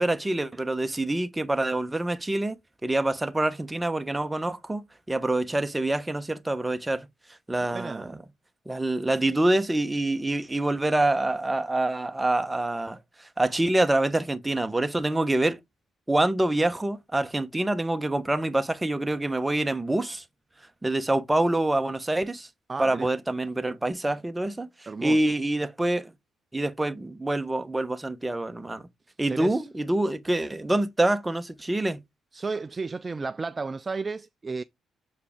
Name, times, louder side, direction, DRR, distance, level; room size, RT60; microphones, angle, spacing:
voice 1, 0.0-2.5 2.8-7.1 7.5-8.1 8.7-13.0 13.4-15.6 16.1-20.2 20.8-22.5 22.8-24.7 25.0-26.1 26.5-28.8 29.2-32.0, right 1 dB, 15° right, 1.0 m, -26 dB
voice 2, 7.7-8.2 22.7-23.1 24.9-25.2 29.3-29.7 32.3-34.6, right 4 dB, 30° right, 0.4 m, -33 dB
7.0 x 4.7 x 3.5 m
cardioid pair, 90°, 0 cm